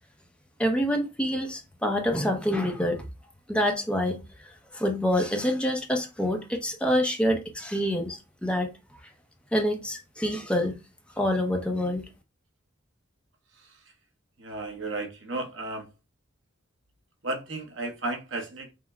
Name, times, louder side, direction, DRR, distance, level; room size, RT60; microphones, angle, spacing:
voice 1, 0.6-3.0 3.5-8.7 9.5-10.7 11.2-12.1, equal, 5° left, 0.7 m, -27 dB
voice 2, 14.4-15.9 17.2-18.7, right 2 dB, 65° right, 1.0 m, -34 dB
5.6 x 2.1 x 3.5 m
head